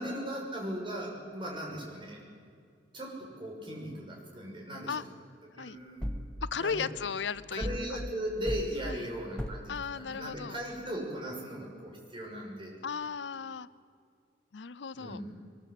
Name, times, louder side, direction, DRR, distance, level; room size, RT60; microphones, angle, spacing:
voice 1, 0.0-2.2 2.9-4.9 5.6-6.1 6.6-6.9 7.5-12.8 14.9-15.3, equal, 30° right, -2 dB, 6.5 m, -38 dB
sound 1, 6.0-6.3 7.6-7.9 8.4-8.7 9.4-9.7, equal, 5° left, 1.1 m, -35 dB
voice 2, 6.4-8.0 8.8-9.1 9.7-10.6 12.8-13.7 14.5-15.2, left 6 dB, 80° left, 17 dB, 0.6 m, -36 dB
23.0 x 21.0 x 8.3 m, 2.2 s
head